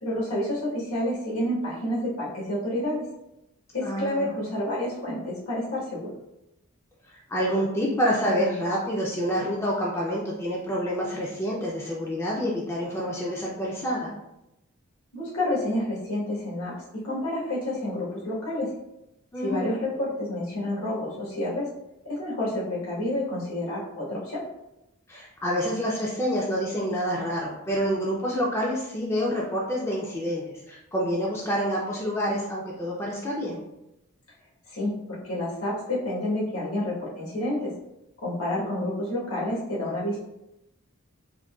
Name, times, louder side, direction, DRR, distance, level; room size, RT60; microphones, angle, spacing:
voice 1, 0.0-3.0 3.7-6.1 15.1-18.7 19.4-21.7 22.0-24.4 34.7-37.7 38.2-40.2, left 1 dB, 85° left, -7 dB, 1.3 m, -29 dB
voice 2, 3.8-4.4 7.3-14.1 19.3-19.8 25.1-33.6 39.7-40.0, equal, 10° left, -4 dB, 0.3 m, -28 dB
3.6 x 2.2 x 2.3 m, 0.88 s
head